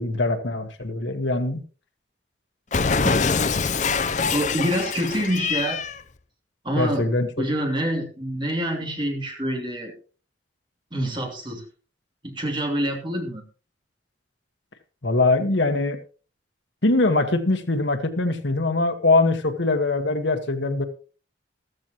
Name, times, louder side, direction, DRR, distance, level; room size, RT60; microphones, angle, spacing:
voice 1, 0.0-1.6 6.8-7.3 15.0-16.0 16.8-20.8, left 2 dB, 80° left, 8 dB, 1.4 m, -22 dB
Cat, 2.7-6.0, left 5 dB, 40° left, 0.6 m, -24 dB
voice 2, 4.3-5.8 6.6-7.0 7.4-9.9 10.9-11.6 12.2-13.4, right 1 dB, 25° right, 1 dB, 2.9 m, -26 dB
14.5 x 13.0 x 3.0 m, 0.37 s
head